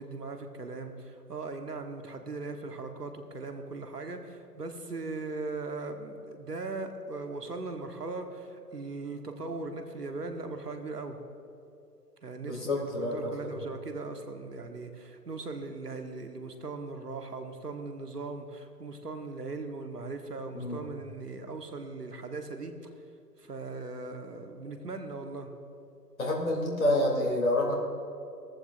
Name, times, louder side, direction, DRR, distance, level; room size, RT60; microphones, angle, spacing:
voice 1, 0.0-11.2 12.2-22.9 23.4-25.5, right 3 dB, 70° right, 5 dB, 1.5 m, -39 dB
voice 2, 12.4-13.1 20.5-20.8 26.2-27.7, left 1 dB, 55° left, -2 dB, 3.2 m, -28 dB
18.5 x 14.5 x 2.6 m, 2.8 s
figure-of-eight pair, 140°, 49 cm